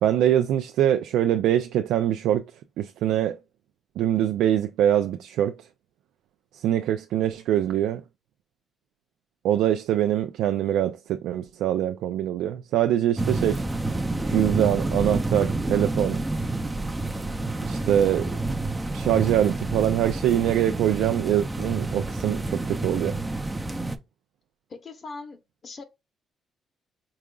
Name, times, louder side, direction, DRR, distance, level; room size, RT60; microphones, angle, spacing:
voice 1, 0.0-2.4 2.8-3.4 4.0-5.7 6.5-8.0 9.4-13.6 14.3-16.2 17.6-18.3 18.9-23.2, right 11 dB, 85° right, 0.3 m, -23 dB
sound 1, 13.2-24.0, right 2 dB, 15° right, 0.5 m, -28 dB
voice 2, 24.7-25.4 25.6-25.8, left 3 dB, 45° left, 1.0 m, -39 dB
4.9 x 3.7 x 2.3 m
cardioid pair, 90°, 0 cm